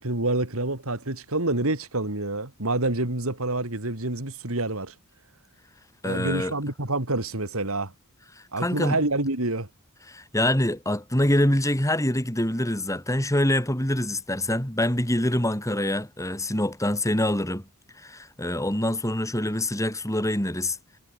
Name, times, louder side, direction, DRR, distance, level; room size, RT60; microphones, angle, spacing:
voice 1, 0.0-4.9 6.0-7.9 8.5-9.7, right 2 dB, 70° right, 3.3 m, -27 dB
voice 2, 6.0-6.5 8.6-9.0 10.1-17.7 17.9-20.8, left 1 dB, 15° left, 4.8 m, -25 dB
head